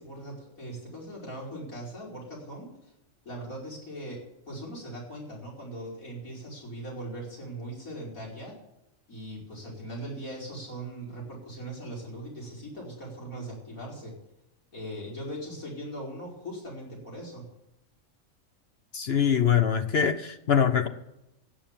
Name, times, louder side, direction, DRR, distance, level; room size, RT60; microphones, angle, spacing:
voice 1, 0.0-2.7 3.3-8.6 9.1-14.2 14.7-17.4, right 1 dB, 85° left, -3 dB, 5.5 m, -40 dB
voice 2, 18.9-20.9, left 8 dB, 55° left, 9 dB, 1.0 m, -23 dB
17.5 x 7.1 x 7.3 m, 0.87 s
omnidirectional pair, 1.4 m